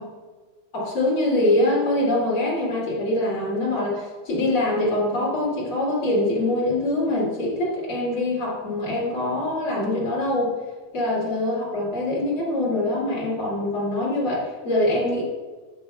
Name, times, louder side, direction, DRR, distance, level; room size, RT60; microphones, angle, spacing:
voice 1, 0.7-10.5 10.9-15.2, left 1 dB, 35° left, -7 dB, 2.4 m, -24 dB
9.5 x 8.1 x 2.3 m, 1.4 s
omnidirectional pair, 5.7 m